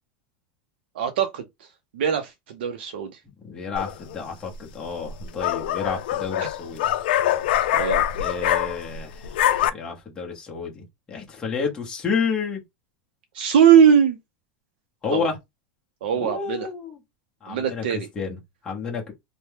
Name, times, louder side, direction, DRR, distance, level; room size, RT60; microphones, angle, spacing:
voice 1, 1.0-1.4 1.9-3.1 7.7-8.1 13.3-14.2 15.1-15.3 16.0-16.7 17.5-18.1, right 8 dB, 90° right, 0.6 m, -20 dB
voice 2, 3.4-6.9 8.2-12.6 15.0-15.4 16.1-17.0 17.4-19.1, left 5 dB, 15° left, 0.9 m, -30 dB
sound 1, 3.8-4.2 5.1-9.0 9.2-9.7, left 12 dB, 70° left, 0.5 m, -24 dB
2.9 x 2.1 x 3.3 m
supercardioid pair, 170°, 5 cm